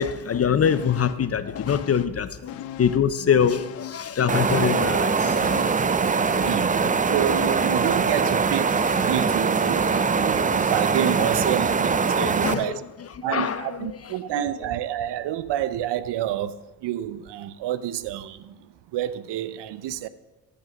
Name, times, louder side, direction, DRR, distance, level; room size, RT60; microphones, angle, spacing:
voice 1, 0.0-5.7 6.0-6.5 6.8-7.4 9.8-10.5 12.1-14.7, left 7 dB, 30° left, 0.7 m, -25 dB
sound 1, 0.6-1.3 1.5-3.1 3.4-7.8 8.1-8.2, left 12 dB, 80° left, 0.6 m, -39 dB
sound 2, 4.3-12.5, right 5 dB, 20° right, 0.5 m, -22 dB
sound 3, 4.5-4.7 5.0-7.1 7.6-11.0, right 2 dB, 45° right, 3.6 m, -45 dB
voice 2, 7.1-12.7 13.2-16.5 16.8-18.6 18.9-20.1, right 11 dB, 65° right, 0.7 m, -28 dB
9.9 x 7.5 x 6.2 m
supercardioid pair, 60°, 45 cm